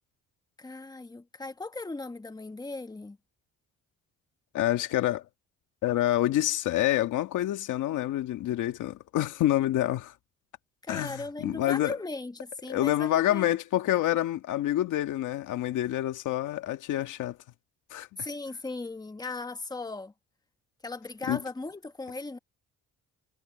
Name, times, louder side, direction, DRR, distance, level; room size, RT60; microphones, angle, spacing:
voice 1, 0.6-3.2 10.8-13.6 18.2-20.1 20.8-22.4, left 3 dB, 15° left, 1.3 m, -37 dB
voice 2, 4.5-5.2 5.8-10.1 10.9-12.0 12.7-17.4 17.9-18.1 21.3-21.4, left 13 dB, 85° left, 1.9 m, -27 dB
cardioid pair, 90°, 30 cm